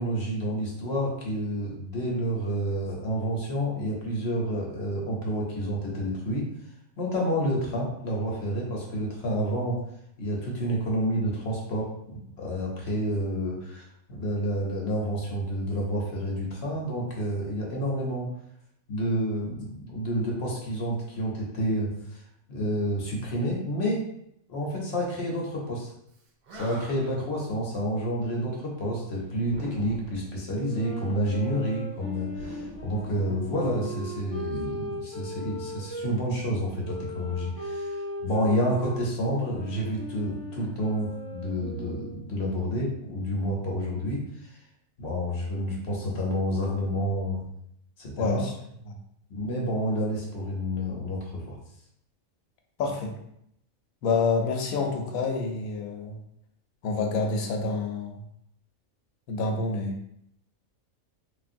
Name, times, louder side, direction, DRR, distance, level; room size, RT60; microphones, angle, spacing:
voice 1, 0.0-6.4 7.0-9.8 10.2-18.3 18.9-22.2 22.5-24.0 24.5-25.9 26.5-44.6 45.0-47.4 48.0-48.4 49.3-51.6, equal, 60° left, -2 dB, 0.9 m, -29 dB
Animal, 26.1-26.2 26.4-27.3 29.4-30.3 32.3-33.6, right 2 dB, 60° right, 0.6 m, -43 dB
sound 1, 30.5-36.1 36.8-42.3, equal, 20° right, 0.8 m, -38 dB
voice 2, 48.2-48.5 48.8-49.0 52.8-53.1 54.0-56.2 56.8-58.2 59.3-60.0, left 4 dB, 90° left, 3 dB, 1.0 m, -28 dB
3.2 x 2.4 x 2.5 m, 0.75 s
omnidirectional pair, 1.4 m